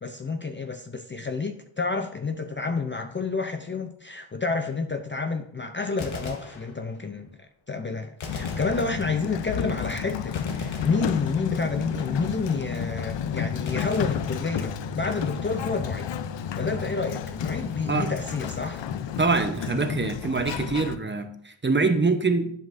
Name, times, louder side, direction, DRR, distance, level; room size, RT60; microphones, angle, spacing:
voice 1, 0.0-16.1 16.6-18.8, left 4 dB, 25° left, 6 dB, 0.5 m, -29 dB
Gunshot gunfire, 6.0-7.2 8.2-9.4 10.3-11.8 13.7-15.0, left 4 dB, 85° left, 1.1 m, -40 dB
Sliding door, 8.3-21.0, left 8 dB, 70° left, 0.6 m, -31 dB
voice 2, 19.2-22.5, right 3 dB, 25° right, 7 dB, 0.8 m, -24 dB
11.0 x 5.3 x 2.6 m, 0.68 s
cardioid pair, 70°, 46 cm